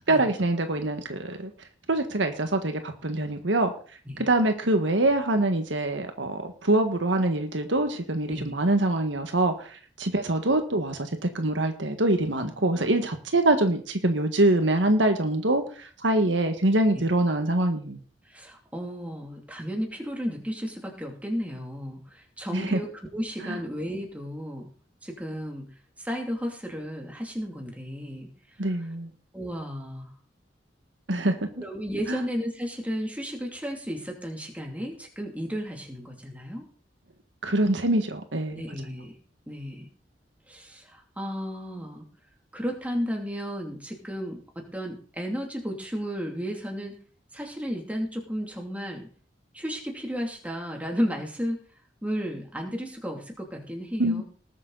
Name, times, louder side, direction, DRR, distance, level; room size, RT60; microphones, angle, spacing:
voice 1, 0.1-1.5 1.9-3.7 4.2-9.7 10.0-18.0 22.5-22.8 23.4-23.6 28.6-29.1 31.1-31.4 32.1-32.2 37.4-38.6 54.0-54.2, right 2 dB, 85° right, 6 dB, 1.6 m, -24 dB
voice 2, 18.3-24.7 25.0-25.7 26.0-28.3 29.3-30.1 31.6-36.7 38.5-39.1 39.5-39.9 40.5-42.1 42.5-46.9 47.3-49.1 49.5-51.6 52.0-54.2, equal, 10° right, 1 dB, 2.7 m, -33 dB
19.5 x 7.4 x 4.1 m, 0.43 s
head